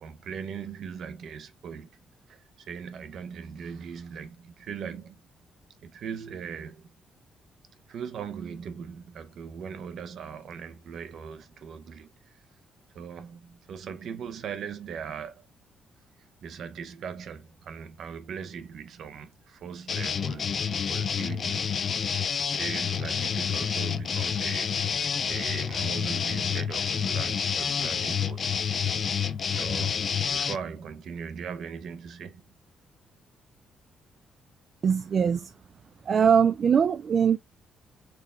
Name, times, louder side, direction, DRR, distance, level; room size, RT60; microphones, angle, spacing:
voice 1, 0.0-2.0 2.3-5.2 5.8-6.9 7.9-12.4 12.9-15.5 16.4-22.0 22.4-24.7 25.2-28.5 29.6-32.4, right 7 dB, 70° right, 0.7 m, -39 dB
sound 1, 19.9-30.6, left 7 dB, 50° left, 0.4 m, -28 dB
voice 2, 34.8-35.5 36.1-37.4, right 7 dB, 50° right, 0.3 m, -22 dB
4.6 x 2.1 x 3.6 m
cardioid pair, 90°, 0 cm